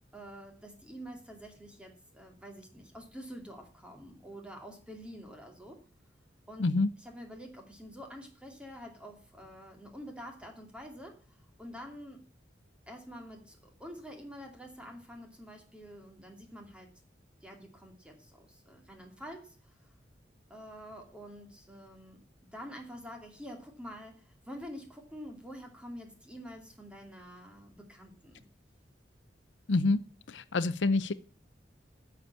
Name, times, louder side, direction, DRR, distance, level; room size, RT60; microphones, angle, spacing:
voice 1, 0.1-5.8 6.5-6.7 7.0-12.2 12.9-16.9 17.4-19.9 20.5-22.2 22.5-28.4, equal, 5° right, 3 dB, 2.5 m, -47 dB
voice 2, 6.6-6.9 29.7-30.0 30.3-31.1, left 3 dB, 85° left, 15 dB, 0.6 m, -27 dB
9.8 x 6.8 x 8.5 m, 0.39 s
head